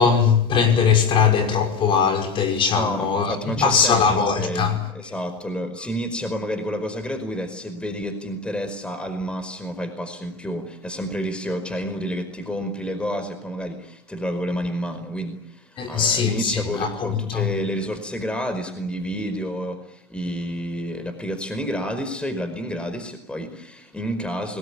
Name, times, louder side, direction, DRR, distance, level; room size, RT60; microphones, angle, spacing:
voice 1, 0.0-4.8 15.8-17.5, left 6 dB, 40° left, 5.6 m, -20 dB
voice 2, 2.7-24.6, equal, 10° left, 5.0 m, -29 dB
29.0 x 20.5 x 8.6 m
hypercardioid pair, 100°, 13 cm